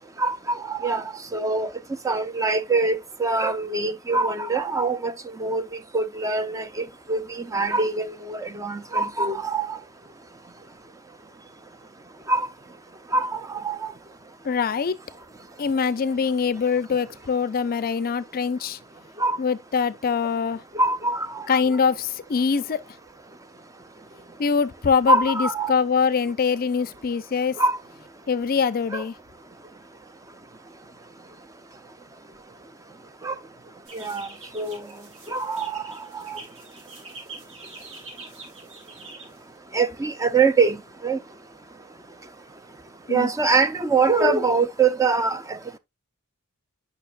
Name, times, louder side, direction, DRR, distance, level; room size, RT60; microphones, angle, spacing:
voice 1, 0.2-1.7 2.0-5.1 5.4-5.6 5.9-9.8 12.3-12.5 13.1-13.9 19.2-19.4 20.7-21.6 25.1-25.7 27.6-27.8 28.9-29.0 33.2-33.3 33.9-34.3 34.5-34.9 35.3-36.4 39.7-40.8 41.0-41.2 43.1-45.8, right 3 dB, 15° right, 0.5 m, -24 dB
voice 2, 14.4-15.0 15.6-18.8 19.4-20.6 21.5-22.8 24.4-27.6 28.3-29.1 43.1-43.3, left 5 dB, 40° left, 0.4 m, -23 dB
sound 1, 33.9-39.6, right 3 dB, 60° right, 4.1 m, -45 dB
9.1 x 5.7 x 2.4 m
head